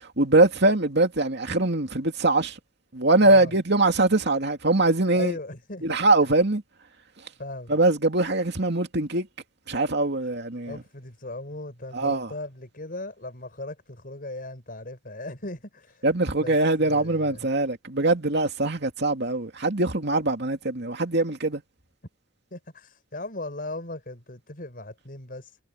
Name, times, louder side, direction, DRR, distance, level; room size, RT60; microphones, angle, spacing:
voice 1, 0.2-2.5 2.9-5.3 5.8-6.6 7.7-9.3 9.7-10.8 11.9-12.3 16.0-21.6, right 2 dB, 60° right, 2.6 m, -22 dB
voice 2, 3.2-3.5 5.1-6.1 7.4-7.7 10.7-16.1 16.4-17.4 22.5-25.6, left 2 dB, 50° left, 5.5 m, -38 dB
head